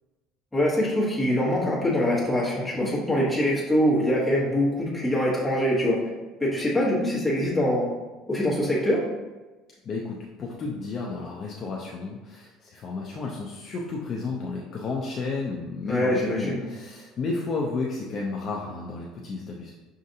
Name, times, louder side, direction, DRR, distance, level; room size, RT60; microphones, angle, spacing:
voice 1, 0.5-6.0 6.4-7.9 8.3-9.0 15.9-16.7, left 1 dB, 5° left, -7 dB, 1.2 m, -24 dB
voice 2, 9.9-19.7, left 3 dB, 30° left, -2 dB, 0.4 m, -32 dB
6.3 x 2.5 x 2.7 m, 1.2 s
cardioid pair, 165°, 0 cm